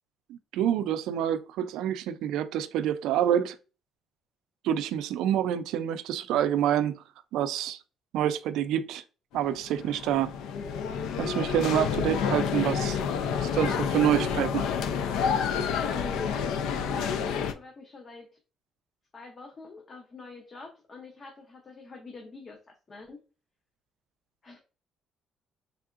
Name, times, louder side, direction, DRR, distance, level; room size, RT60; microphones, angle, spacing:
voice 1, 0.3-3.6 4.6-7.0 7.3-7.8 8.1-9.0 9.3-10.3 11.2-13.0 13.4-14.7, right 10 dB, 85° right, 0.3 m, -27 dB
sound 1, 9.3-17.5, left 7 dB, 85° left, 0.4 m, -29 dB
voice 2, 15.8-18.4 19.1-23.2 24.4-24.6, left 3 dB, 25° left, 0.5 m, -44 dB
3.7 x 3.3 x 2.4 m
cardioid pair, 160°, 0 cm